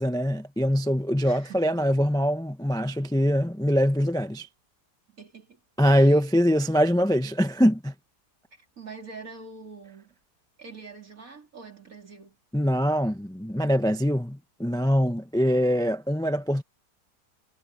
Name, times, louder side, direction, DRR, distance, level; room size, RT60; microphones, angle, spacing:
voice 1, 0.0-4.5 5.8-7.9 12.5-16.6, equal, 5° left, 0.6 m, -23 dB
voice 2, 1.2-1.7 5.1-5.6 5.9-6.2 8.5-10.2 10.6-12.4, right 4 dB, 55° right, 4.1 m, -45 dB
omnidirectional pair, 1.8 m